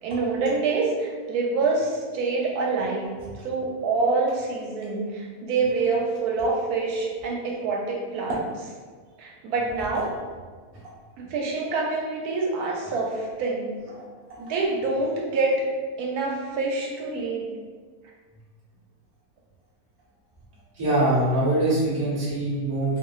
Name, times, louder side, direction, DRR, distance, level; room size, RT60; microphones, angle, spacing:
voice 1, 0.0-3.1 3.4-8.3 9.2-10.1 11.2-13.7 14.4-15.6 16.0-17.5, right 3 dB, 80° right, -1 dB, 1.1 m, -26 dB
voice 2, 20.7-23.0, right 1 dB, 20° right, -9 dB, 0.6 m, -23 dB
2.9 x 2.7 x 2.3 m, 1.5 s
omnidirectional pair, 1.6 m